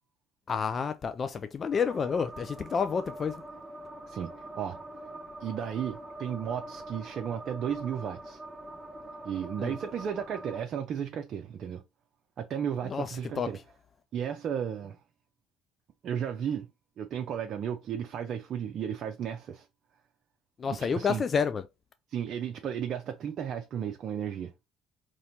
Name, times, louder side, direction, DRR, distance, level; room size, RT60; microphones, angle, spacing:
voice 1, 0.5-3.3 9.6-9.8 12.9-13.5 20.6-21.6, left 6 dB, 40° left, 0.4 m, -29 dB
sound 1, 1.7-10.6, right 1 dB, 15° right, 0.7 m, -44 dB
voice 2, 4.1-4.8 5.4-8.4 9.2-11.8 12.4-13.6 14.1-15.0 16.0-16.7 17.0-19.7 20.8-21.2 22.1-24.5, right 8 dB, 55° right, 0.5 m, -34 dB
4.2 x 3.1 x 2.7 m
hypercardioid pair, 55°, 0 cm